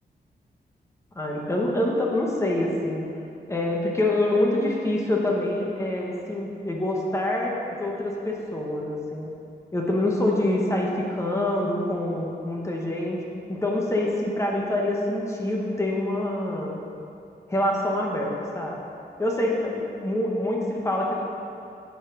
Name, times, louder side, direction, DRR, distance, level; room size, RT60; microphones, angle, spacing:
voice 1, 1.1-3.0 3.5-9.3 9.7-13.2 13.5-16.8 17.5-18.8 19.2-21.1, left 1 dB, 15° left, -2 dB, 1.1 m, -26 dB
8.2 x 7.3 x 4.8 m, 2.6 s
wide cardioid pair, 175°, 18 cm